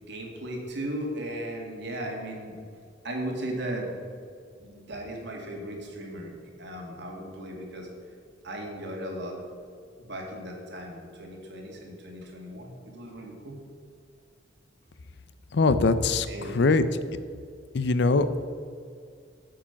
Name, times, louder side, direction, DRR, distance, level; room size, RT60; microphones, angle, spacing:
voice 1, 0.0-2.6 3.0-3.9 4.5-7.9 8.4-9.4 10.0-13.6 16.3-16.6, right 1 dB, 60° right, 1 dB, 2.1 m, -36 dB
voice 2, 15.5-16.8 17.7-18.4, left 3 dB, 60° left, 12 dB, 0.6 m, -22 dB
8.7 x 7.6 x 5.8 m, 2.2 s
head